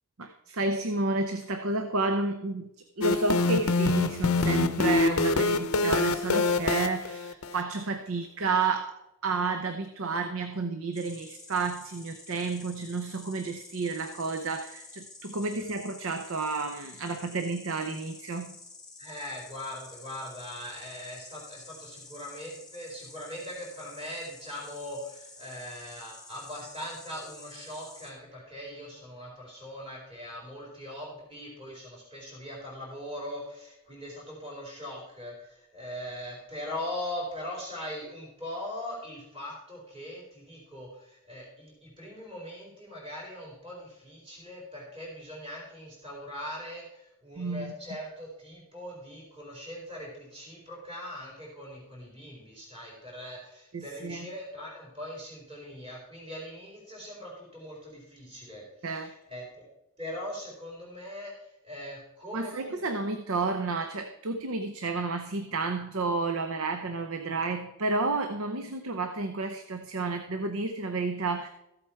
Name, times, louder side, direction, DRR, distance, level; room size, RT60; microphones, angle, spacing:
voice 1, 0.2-18.6 47.4-48.0 53.7-54.3 58.8-59.1 62.3-71.5, right 3 dB, 70° right, 8 dB, 0.7 m, -31 dB
sound 1, 3.0-7.6, left 3 dB, 75° left, 0.6 m, -25 dB
Insect, 10.9-28.1, left 3 dB, 5° left, 1.5 m, -50 dB
voice 2, 19.0-59.7 60.0-62.9, left 1 dB, 25° right, -4 dB, 4.3 m, -41 dB
14.0 x 8.0 x 4.5 m, 0.87 s
head